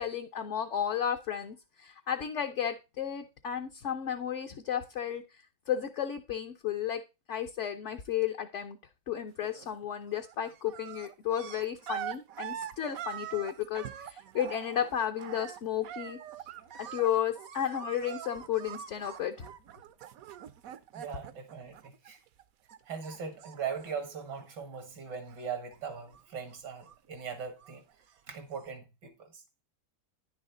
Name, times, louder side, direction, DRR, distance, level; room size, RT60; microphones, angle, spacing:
voice 1, 0.0-5.2 5.7-7.0 7.3-8.8 9.1-16.2 16.8-19.5, left 9 dB, 60° left, 0.8 m, -33 dB
sound 1, 9.4-9.9 10.1-22.4 22.7-24.8 25.1-25.8 26.1-27.9 28.6-28.7, right 10 dB, 65° right, 1.0 m, -44 dB
voice 2, 20.9-22.2 22.9-27.8 28.3-29.4, right 6 dB, 85° right, 2.2 m, -40 dB
10.5 x 6.4 x 3.7 m
omnidirectional pair, 1.8 m